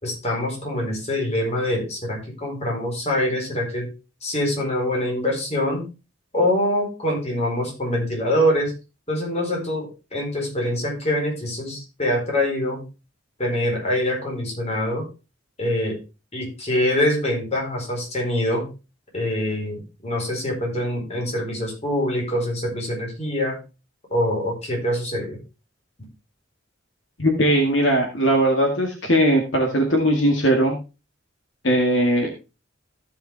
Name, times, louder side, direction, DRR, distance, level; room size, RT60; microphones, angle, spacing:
voice 1, 0.0-3.9 4.2-5.9 6.3-8.7 9.1-12.9 13.4-15.1 15.6-16.0 16.3-18.7 19.1-23.6 24.1-25.4, left 1 dB, 35° left, -1 dB, 4.3 m, -24 dB
voice 2, 27.2-30.8 31.6-32.3, right 1 dB, 70° left, 2 dB, 2.1 m, -19 dB
15.0 x 5.8 x 3.4 m, 0.29 s
head